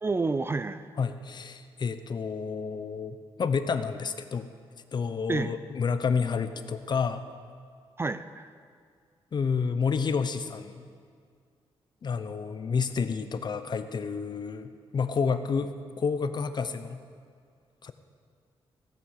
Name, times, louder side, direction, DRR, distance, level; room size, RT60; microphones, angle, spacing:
voice 1, 0.0-0.8 5.3-5.5 8.0-8.5, right 3 dB, 25° right, 13 dB, 0.4 m, -29 dB
voice 2, 1.0-4.5 4.9-7.3 9.3-10.9 12.0-17.0 17.8-17.9, left 5 dB, 45° left, 10 dB, 0.8 m, -30 dB
15.5 x 9.1 x 6.6 m, 2.1 s
cardioid pair, 110°, 10 cm